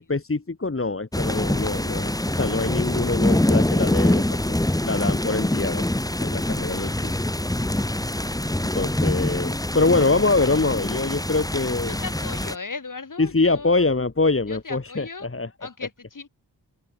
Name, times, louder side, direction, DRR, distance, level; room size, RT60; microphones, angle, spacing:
voice 1, 0.0-4.2 4.5-4.6 4.8-5.9 6.2-7.2 8.7-12.0 13.2-15.7, left 3 dB, 30° left, 2.7 m, -24 dB
sound 1, 1.1-12.6, left 1 dB, 10° left, 1.6 m, -24 dB
voice 2, 11.9-13.8 14.5-15.3 15.6-16.3, left 4 dB, 50° left, 4.5 m, -37 dB
open air
wide cardioid pair, 75°, 40 cm